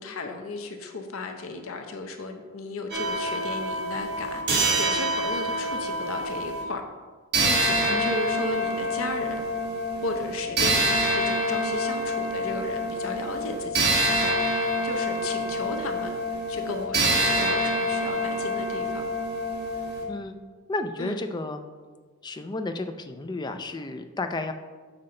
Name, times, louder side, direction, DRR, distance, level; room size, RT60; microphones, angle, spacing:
voice 1, 0.0-6.8 7.4-9.5 10.0-19.1 21.0-21.2, left 3 dB, 80° left, 5 dB, 0.7 m, -35 dB
sound 1, 2.9-6.6 7.3-20.0, right 1 dB, 50° right, 1.2 m, -26 dB
voice 2, 20.7-21.6 22.2-24.5, left 2 dB, 20° left, 7 dB, 0.3 m, -32 dB
6.5 x 5.8 x 3.8 m, 1.4 s
head